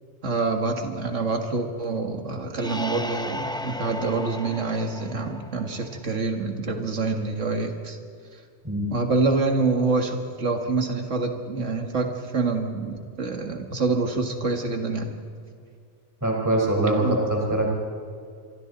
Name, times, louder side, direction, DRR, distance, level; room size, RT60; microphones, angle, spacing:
voice 1, 0.2-8.0 8.9-15.1 17.0-17.2, right 3 dB, 65° right, 4 dB, 2.1 m, -26 dB
sound 1, 2.6-6.2, equal, 5° left, 0.5 m, -35 dB
voice 2, 16.2-17.7, right 1 dB, 15° right, -1 dB, 4.2 m, -23 dB
26.5 x 24.5 x 4.0 m, 2.2 s
omnidirectional pair, 1.4 m